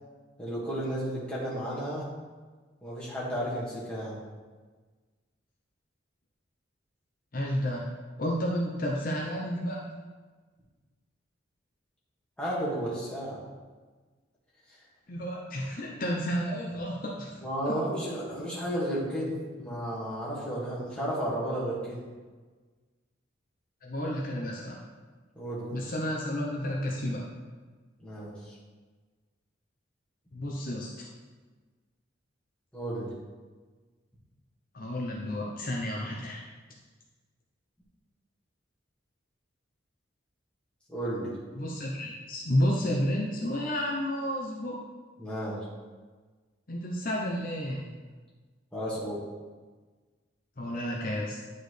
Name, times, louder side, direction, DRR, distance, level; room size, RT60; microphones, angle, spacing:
voice 1, 0.4-2.1 2.8-4.2 12.4-13.4 17.4-22.0 25.4-25.7 28.0-28.6 32.7-33.1 40.9-41.4 45.2-45.7 48.7-49.2, right 1 dB, 5° left, -8 dB, 1.9 m, -33 dB
voice 2, 7.3-7.9 8.2-9.8 15.1-17.4 17.7-17.8 23.8-24.8 25.7-27.2 30.3-31.1 34.7-36.4 41.6-44.8 46.7-47.9 50.6-51.4, equal, 45° left, -2 dB, 0.8 m, -31 dB
10.0 x 4.3 x 3.3 m, 1.4 s
head